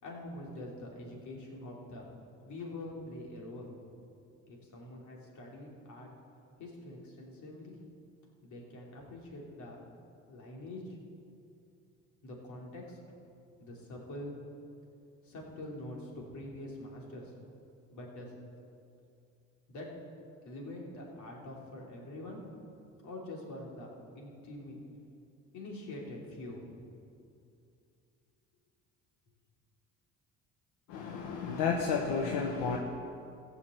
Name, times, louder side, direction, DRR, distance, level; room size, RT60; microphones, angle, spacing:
voice 1, 0.0-2.0 2.4-3.7 4.5-6.1 6.6-7.8 8.4-9.8 10.3-11.0 12.2-13.0 13.6-14.4 15.2-17.3 17.9-18.3 19.7-19.9 20.4-22.4 23.0-24.8 25.5-26.8, left 1 dB, 65° left, -2 dB, 3.4 m, -45 dB
voice 2, 30.9-32.8, left 5 dB, 85° left, 1 dB, 1.2 m, -31 dB
15.5 x 6.9 x 8.0 m, 2.6 s
supercardioid pair, 85°, 32 cm